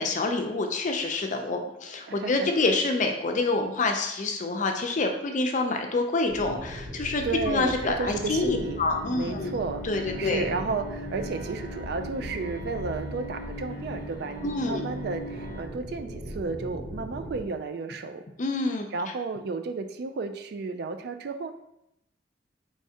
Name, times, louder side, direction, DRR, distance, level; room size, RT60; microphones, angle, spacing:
voice 1, 0.0-9.5 9.8-10.5 14.4-14.9 18.4-18.9, left 3 dB, 45° left, 4 dB, 0.5 m, -27 dB
voice 2, 2.1-2.5 7.2-8.8 9.1-18.3 18.9-21.5, right 4 dB, 60° right, 8 dB, 0.3 m, -33 dB
sound 1, 6.3-17.4, equal, 30° right, 0.6 m, -40 dB
Bowed string instrument, 8.1-15.6, right 1 dB, 80° right, 1.0 m, -39 dB
4.6 x 3.2 x 2.7 m, 0.83 s
head